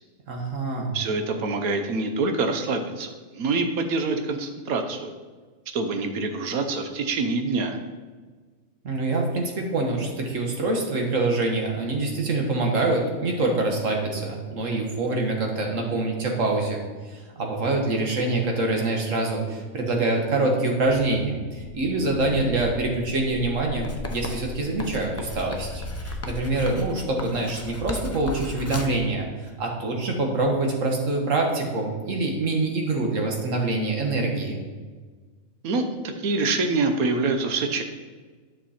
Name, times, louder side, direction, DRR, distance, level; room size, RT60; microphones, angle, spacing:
voice 1, 0.3-1.0 8.8-34.6, right 2 dB, 65° right, 1 dB, 1.6 m, -25 dB
voice 2, 0.9-5.1 5.7-7.8 35.6-35.9 36.2-37.8, right 3 dB, 90° right, 6 dB, 1.3 m, -25 dB
sound 1, 20.8-26.7, left 3 dB, 45° left, 1.4 m, -38 dB
Writing, 23.8-29.0, left 2 dB, 25° left, 0.3 m, -36 dB
10.0 x 6.0 x 4.2 m, 1.4 s
omnidirectional pair, 1.5 m